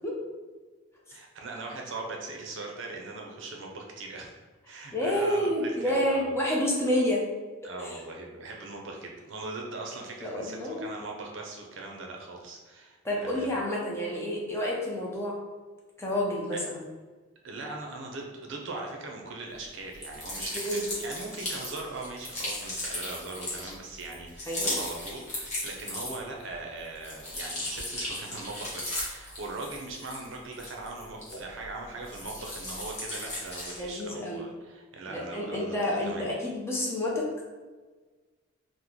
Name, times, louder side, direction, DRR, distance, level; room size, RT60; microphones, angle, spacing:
voice 1, 1.1-4.4 4.7-6.3 7.6-13.5 16.5-16.6 17.4-36.3, right 3 dB, 65° right, 0 dB, 0.5 m, -40 dB
voice 2, 4.9-7.2 7.8-8.0 10.2-10.9 13.0-15.4 16.0-16.8 20.5-20.8 24.5-24.8 33.8-34.4 35.1-37.4, left 1 dB, 15° left, -4 dB, 0.5 m, -29 dB
sound 1, 19.9-26.4 26.8-31.7 32.0-33.9, left 1 dB, 35° left, 1.0 m, -36 dB
3.0 x 2.1 x 3.7 m, 1.3 s
head